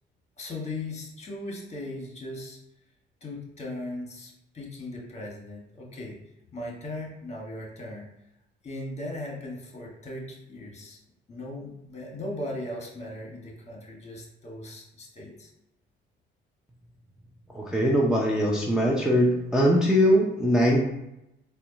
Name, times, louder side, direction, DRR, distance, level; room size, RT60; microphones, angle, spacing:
voice 1, 0.4-2.6 3.2-6.2 6.5-8.0 8.6-11.0 11.3-15.5, left 1 dB, 35° left, -1 dB, 1.4 m, -38 dB
voice 2, 17.5-20.8, equal, 5° right, -4 dB, 0.6 m, -21 dB
4.1 x 2.3 x 4.0 m, 0.86 s
cardioid pair, 90°, 20 cm